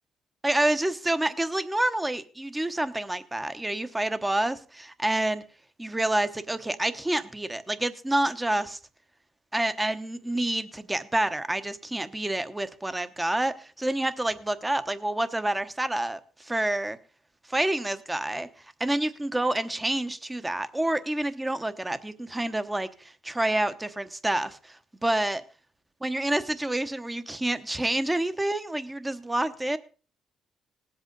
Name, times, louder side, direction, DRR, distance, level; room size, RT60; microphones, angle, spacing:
voice 1, 0.4-5.4 5.8-8.8 9.5-17.0 17.5-18.5 18.8-25.4 26.0-29.8, right 1 dB, 15° right, 0.9 m, -28 dB
19.0 x 8.0 x 3.9 m
cardioid pair, 90°, 0 cm